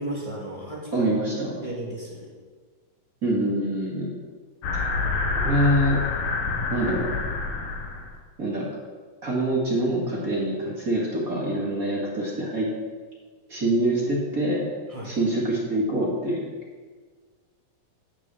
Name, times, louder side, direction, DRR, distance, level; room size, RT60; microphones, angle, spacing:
voice 1, 0.0-1.1 1.6-2.3 14.9-15.2, right 1 dB, 15° left, -5 dB, 1.3 m, -34 dB
voice 2, 0.9-1.6 3.2-4.1 5.4-6.0 6.7-7.1 8.4-8.7 9.2-12.7 13.5-14.6 15.0-16.5, right 1 dB, 35° right, -4 dB, 1.5 m, -25 dB
sound 1, 4.6-8.1, left 3 dB, 80° left, 3.0 m, -27 dB
9.4 x 6.1 x 7.5 m, 1.5 s
omnidirectional pair, 3.9 m